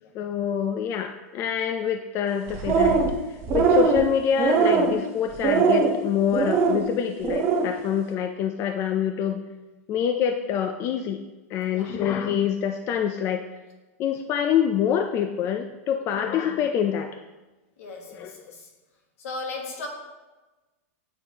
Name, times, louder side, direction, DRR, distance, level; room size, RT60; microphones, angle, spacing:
voice 1, 0.1-3.0 3.5-9.4 9.9-11.2 11.5-13.5 14.0-17.1 18.2-18.3, left 8 dB, 35° left, 5 dB, 0.4 m, -26 dB
sound 1, 2.5-3.1 3.4-4.0 4.4-4.9 5.4-5.9 6.3-6.8 7.2-7.7, right 5 dB, 35° right, 0.9 m, -21 dB
voice 2, 11.7-12.0 15.9-16.2 17.8-18.7 19.2-19.9, left 3 dB, 75° left, 1 dB, 1.5 m, -37 dB
8.3 x 4.4 x 2.8 m, 1.1 s
supercardioid pair, 135°, 8 cm